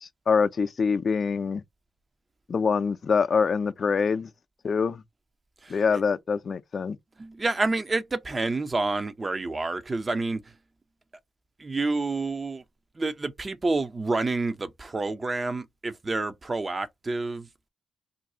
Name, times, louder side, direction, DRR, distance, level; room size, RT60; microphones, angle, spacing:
voice 1, 0.0-1.6 2.5-4.3 4.6-5.0 5.7-7.0, left 5 dB, 55° left, 0.4 m, -25 dB
voice 2, 5.6-6.0 7.2-10.6 11.6-12.6 12.9-17.7, right 3 dB, 35° right, 0.5 m, -29 dB
2.6 x 2.3 x 3.8 m
hypercardioid pair, 45°, 0 cm